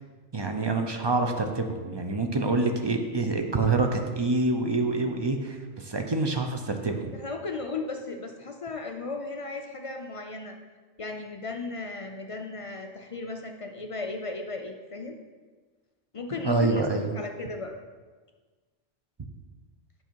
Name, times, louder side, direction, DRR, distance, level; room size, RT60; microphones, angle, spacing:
voice 1, 0.3-7.1 16.4-17.1, right 3 dB, 30° right, 4 dB, 0.5 m, -26 dB
voice 2, 7.1-10.6 11.0-15.2 16.1-16.9 17.1-17.8, left 3 dB, 55° left, 4 dB, 0.3 m, -36 dB
8.1 x 5.5 x 4.5 m, 1.4 s
omnidirectional pair, 1.2 m